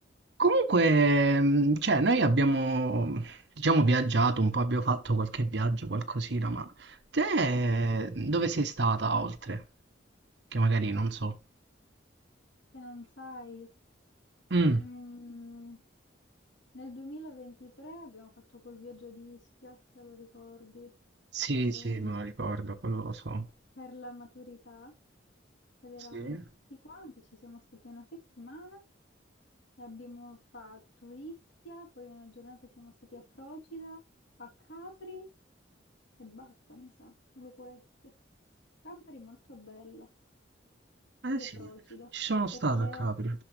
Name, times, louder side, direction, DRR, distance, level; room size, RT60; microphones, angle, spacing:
voice 1, 0.4-9.6 10.5-11.3 14.5-14.8 21.3-23.4 26.1-26.4 41.2-41.5 42.1-43.3, right 2 dB, 65° right, 0.9 m, -27 dB
voice 2, 12.7-13.7 14.7-15.8 16.7-20.9 21.5-22.2 23.8-24.9 25.8-26.4 26.7-28.1 28.4-28.8 29.8-31.3 31.6-34.0 34.4-35.2 36.2-38.1 38.8-40.1 41.3-42.1 42.5-43.1, left 1 dB, 75° left, 3.0 m, -47 dB
12.0 x 4.7 x 3.2 m
head